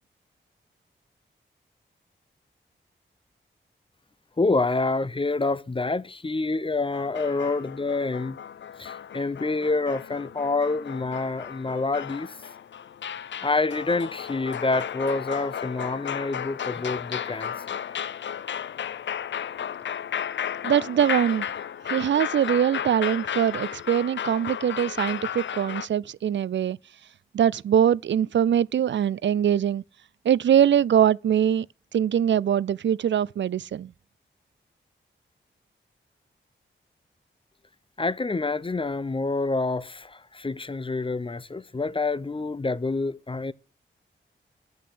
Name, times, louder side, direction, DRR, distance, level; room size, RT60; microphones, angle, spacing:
voice 1, 4.4-8.4 8.8-12.4 13.4-17.8 38.0-43.5, left 3 dB, 25° left, 0.7 m, -27 dB
sound 1, 6.9-25.9, left 9 dB, 65° left, 0.5 m, -34 dB
voice 2, 20.6-21.5 21.9-26.8 27.3-29.8 30.3-31.7 31.9-33.9, right 9 dB, 65° right, 0.4 m, -22 dB
8.1 x 6.7 x 7.8 m
cardioid pair, 45°, 21 cm